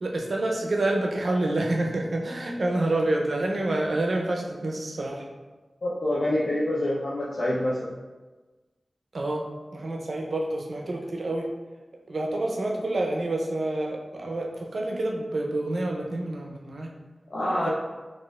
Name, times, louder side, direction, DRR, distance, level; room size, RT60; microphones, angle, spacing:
voice 1, 0.0-5.3 9.1-11.5 12.1-16.9, right 2 dB, 75° right, 0 dB, 0.5 m, -28 dB
voice 2, 5.8-8.0 17.3-17.7, left 1 dB, 80° left, -7 dB, 0.4 m, -26 dB
4.1 x 2.4 x 2.3 m, 1.3 s
wide cardioid pair, 75°, 0 cm